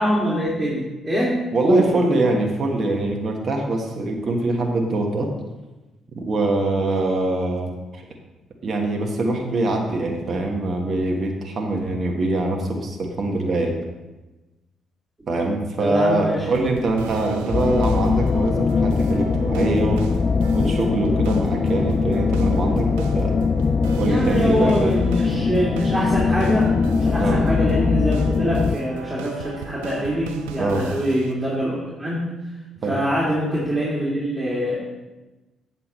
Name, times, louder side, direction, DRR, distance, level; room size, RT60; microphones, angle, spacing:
voice 1, 0.0-1.3 1.6-2.0 15.8-16.5 24.0-32.3 32.9-34.8, equal, 15° right, -7 dB, 2.9 m, -24 dB
voice 2, 1.5-5.3 6.2-8.0 8.6-13.7 15.3-20.0 20.5-23.5 24.0-24.9 27.2-27.4 30.6-30.9 32.8-33.0, right 2 dB, 50° right, 1 dB, 1.3 m, -23 dB
sound 1, 16.4-31.3, right 6 dB, 80° right, 0.6 m, -37 dB
sound 2, 17.5-28.8, left 5 dB, 45° left, 0.4 m, -21 dB
8.0 x 7.1 x 4.3 m, 1.1 s
hypercardioid pair, 45°, 0 cm